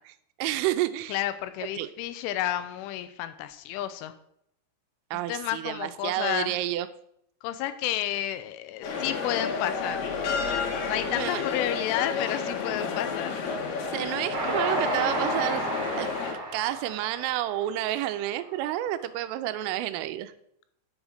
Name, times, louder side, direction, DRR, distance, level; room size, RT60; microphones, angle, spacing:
voice 1, 0.4-1.2 1.8-1.9 5.1-6.9 11.1-11.5 13.9-15.7 16.0-16.1 16.5-20.3, right 13 dB, 85° right, 12 dB, 3.1 m, -30 dB
voice 2, 1.1-4.1 5.3-6.6 7.4-10.0 10.9-13.4, left 12 dB, 80° left, 11 dB, 3.0 m, -31 dB
sound 1, 8.8-16.3, left 5 dB, 65° left, 2.9 m, -31 dB
Train, 14.3-18.7, right 2 dB, 40° right, 2.0 m, -32 dB
10.5 x 6.1 x 6.5 m, 0.74 s
omnidirectional pair, 5.7 m